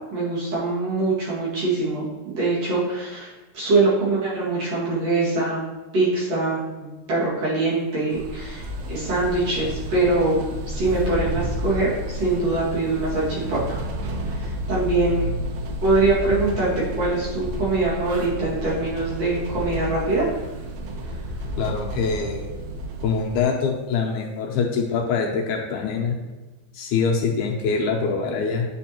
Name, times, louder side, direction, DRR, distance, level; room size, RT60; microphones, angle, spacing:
voice 1, 0.1-5.6 5.9-6.6 7.1-13.8 14.3-15.4 15.8-16.7 17.0-20.3, right 3 dB, 55° right, -8 dB, 2.9 m, -23 dB
sound 1, 8.1-23.4, equal, 75° right, 2.0 m, -31 dB
voice 2, 21.6-22.4 23.0-26.2 26.7-28.7, left 5 dB, 80° left, 1 dB, 1.9 m, -24 dB
8.9 x 4.5 x 2.9 m, 1.2 s
omnidirectional pair, 3.7 m